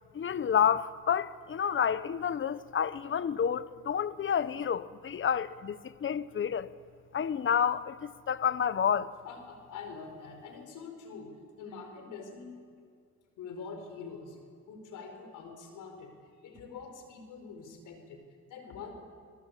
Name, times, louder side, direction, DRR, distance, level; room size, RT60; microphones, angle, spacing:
voice 1, 0.1-6.7 7.1-9.1, left 8 dB, 40° left, 0.9 m, -29 dB
voice 2, 9.2-12.6 13.4-14.4 14.7-18.9, left 5 dB, 85° left, 4.8 m, -45 dB
27.0 x 21.0 x 8.4 m
cardioid pair, 90°, 30 cm